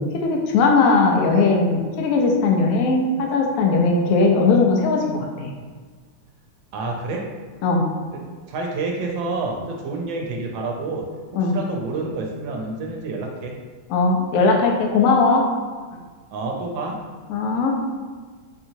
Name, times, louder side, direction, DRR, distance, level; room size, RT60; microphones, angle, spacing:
voice 1, 0.0-5.5 7.6-7.8 11.3-11.5 13.9-15.4 17.3-17.7, left 3 dB, 75° left, 1 dB, 0.8 m, -19 dB
voice 2, 6.7-7.2 8.5-11.0 11.3-13.5 16.3-17.0, right 3 dB, 85° right, 1 dB, 1.3 m, -28 dB
4.3 x 2.8 x 2.7 m, 1.5 s
omnidirectional pair, 2.1 m